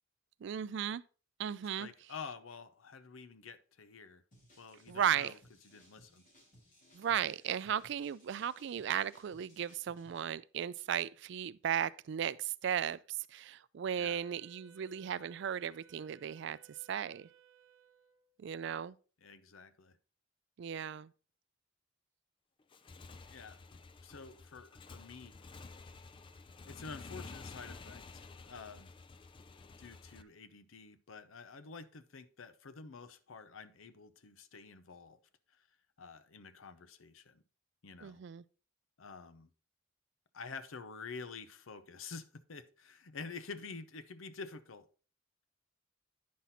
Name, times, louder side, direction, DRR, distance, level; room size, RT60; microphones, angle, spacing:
voice 1, 0.4-1.0 1.4-1.9 4.9-5.3 6.9-16.6 16.9-17.3 18.4-18.9 20.6-21.1 38.0-38.4, right 9 dB, 60° right, 0.3 m, -36 dB
voice 2, 1.8-4.2 4.6-5.4 5.6-6.2 14.0-14.2 19.2-20.0 23.2-25.3 26.7-28.9 29.8-35.2 35.5-35.7 36.0-37.4 37.8-38.2 39.0-39.5 40.3-44.9, left 4 dB, 85° left, 0.7 m, -49 dB
sound 1, 4.3-10.2, equal, 40° left, 3.5 m, -64 dB
Wind instrument woodwind instrument, 13.9-18.4, right 8 dB, 85° right, 0.8 m, -63 dB
Motorcycle / Engine, 22.6-30.2, left 3 dB, 25° left, 0.3 m, -51 dB
9.5 x 5.8 x 4.1 m
head